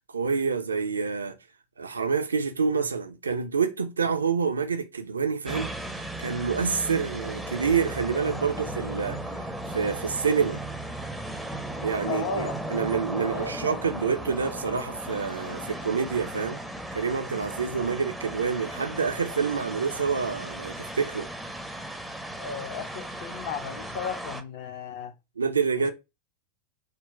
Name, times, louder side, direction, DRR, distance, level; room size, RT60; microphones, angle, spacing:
voice 1, 0.1-1.4 1.8-10.6 11.8-16.6 16.9-21.3 25.4-25.9, right 5 dB, 75° right, 0.3 m, -27 dB
sound 1, 5.5-24.4, right 1 dB, ahead, 0.5 m, -36 dB
voice 2, 12.1-12.8 13.2-13.7 17.7-17.8 22.4-25.1 25.8-25.9, left 6 dB, 50° left, 0.5 m, -35 dB
3.7 x 2.1 x 2.4 m
figure-of-eight pair, 90°, 0 cm